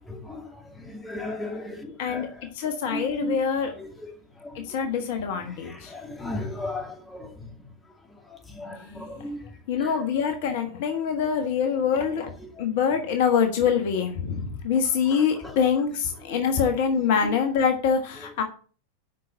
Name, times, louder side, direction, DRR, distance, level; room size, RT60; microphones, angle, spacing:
voice 1, 0.1-0.5 0.9-2.2 2.9-3.4 5.9-7.3 8.6-9.4, left 1 dB, 10° left, 2.5 m, -34 dB
voice 2, 2.0-3.7 4.5-5.9 8.9-9.0 9.7-12.3 12.6-18.4, left 7 dB, 50° left, 1.4 m, -25 dB
8.3 x 5.8 x 7.8 m
figure-of-eight pair, 90°, 0 cm